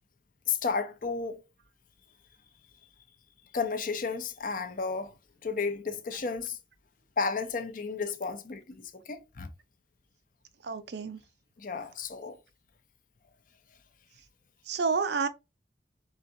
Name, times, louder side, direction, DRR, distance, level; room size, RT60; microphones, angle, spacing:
voice 1, 0.5-1.4 3.5-5.1 5.4-6.6 7.2-9.5 11.6-12.4, left 5 dB, 45° left, 0.5 m, -32 dB
voice 2, 10.6-11.2 14.7-15.3, right 5 dB, 70° right, 0.5 m, -29 dB
3.9 x 3.5 x 2.6 m
head